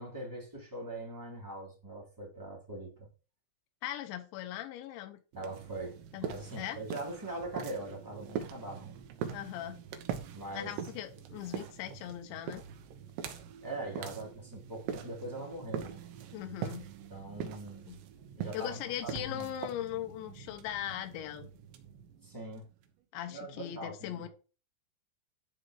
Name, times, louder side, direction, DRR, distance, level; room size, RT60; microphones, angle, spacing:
voice 1, 0.0-3.1 5.3-9.0 10.3-10.7 13.6-16.0 17.1-17.9 18.3-19.5 22.2-22.7 23.3-24.3, right 2 dB, 5° right, 1.4 m, -42 dB
voice 2, 3.8-5.2 6.1-6.8 9.3-9.8 10.5-12.6 16.3-16.9 17.9-18.0 18.5-21.5 23.1-24.3, left 12 dB, 80° left, 3.3 m, -39 dB
sound 1, 5.3-22.9, right 8 dB, 75° right, 3.1 m, -43 dB
12.0 x 4.0 x 4.8 m
omnidirectional pair, 5.4 m